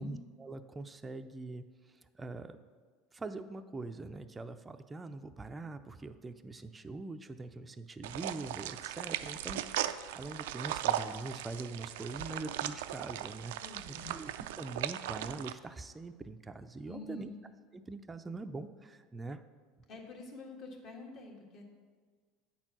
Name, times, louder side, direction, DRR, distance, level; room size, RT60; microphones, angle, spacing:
voice 1, 0.0-2.6 3.1-13.6 14.1-14.3 14.6-17.3 17.7-19.4, right 3 dB, 15° right, 8 dB, 0.4 m, -43 dB
sound 1, 8.0-15.5, right 12 dB, 85° right, 0.3 m, -38 dB
voice 2, 13.6-14.1 16.9-17.3 19.9-21.6, left 3 dB, 50° left, 1 dB, 1.7 m, -47 dB
8.4 x 4.4 x 6.0 m, 1.5 s
supercardioid pair, 115°, 0 cm